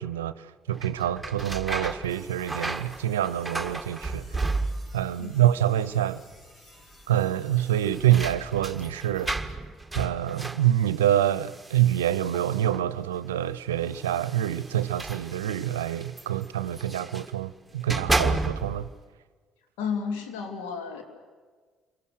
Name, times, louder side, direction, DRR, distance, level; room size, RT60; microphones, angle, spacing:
voice 1, 0.0-4.4 4.9-6.2 7.1-9.6 9.9-18.9, right 12 dB, 85° right, 0.6 m, -26 dB
sound 1, 0.7-5.1 5.4-6.1 6.4-6.5 7.5-13.0 13.8-17.3 17.7-18.9, right 2 dB, 10° right, 1.5 m, -33 dB
sound 2, 2.1-8.3, left 1 dB, 40° left, 7.1 m, -54 dB
voice 2, 19.8-21.0, left 6 dB, 75° left, 2.7 m, -32 dB
28.5 x 23.5 x 6.4 m
hypercardioid pair, 55°, 0 cm